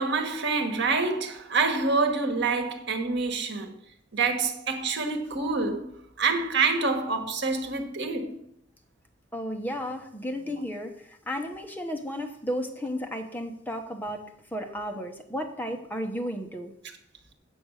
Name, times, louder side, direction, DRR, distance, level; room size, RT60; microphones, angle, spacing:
voice 1, 0.0-3.8 4.1-5.9 6.2-8.4, right 4 dB, 65° right, 1.4 m, -26 dB
voice 2, 9.3-14.2 14.5-16.7, equal, 10° left, 1.0 m, -33 dB
8.0 x 7.8 x 6.3 m
head